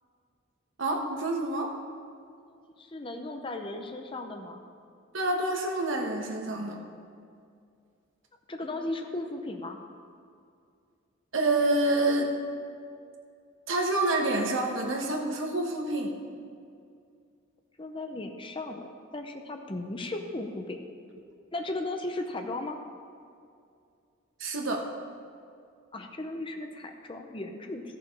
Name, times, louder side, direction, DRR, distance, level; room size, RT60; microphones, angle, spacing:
voice 1, 0.8-1.7 5.1-6.8 11.3-12.3 13.7-16.1 24.4-24.8, right 2 dB, 65° right, 1 dB, 1.3 m, -27 dB
voice 2, 2.8-4.6 8.5-9.8 17.8-20.8 21.5-22.8 25.9-27.8, left 2 dB, 25° left, 4 dB, 0.7 m, -36 dB
14.0 x 6.8 x 4.8 m, 2.3 s
head